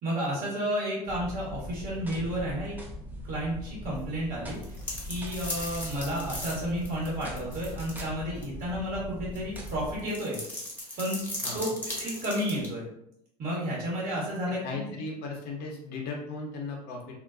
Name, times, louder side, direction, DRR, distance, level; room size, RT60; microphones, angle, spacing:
voice 1, 0.0-2.7 3.2-4.8 5.1-10.4 11.0-11.2 11.5-11.7 12.0-12.9 13.4-14.9, equal, 45° right, -5 dB, 1.2 m, -31 dB
sound 1, 1.1-9.9, equal, 10° right, 0.6 m, -41 dB
sound 2, 4.5-8.1 8.4-8.5 9.3-12.7, left 1 dB, 10° left, 1.0 m, -37 dB
voice 2, 11.4-11.7 14.6-17.2, left 3 dB, 50° left, 0 dB, 0.7 m, -36 dB
2.4 x 2.1 x 2.4 m, 0.76 s
hypercardioid pair, 75°, 21 cm